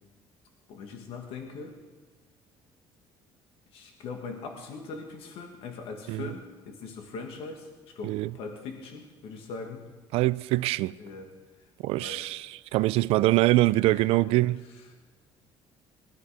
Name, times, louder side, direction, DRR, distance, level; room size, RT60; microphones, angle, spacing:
voice 1, 0.7-1.8 3.7-9.9 11.0-12.3 13.9-14.3 14.7-14.9, left 4 dB, 70° left, 1.8 m, -41 dB
voice 2, 10.1-10.9 11.8-14.6, right 18 dB, 80° right, 0.4 m, -24 dB
20.5 x 12.5 x 5.0 m
cardioid pair, 120°, 10 cm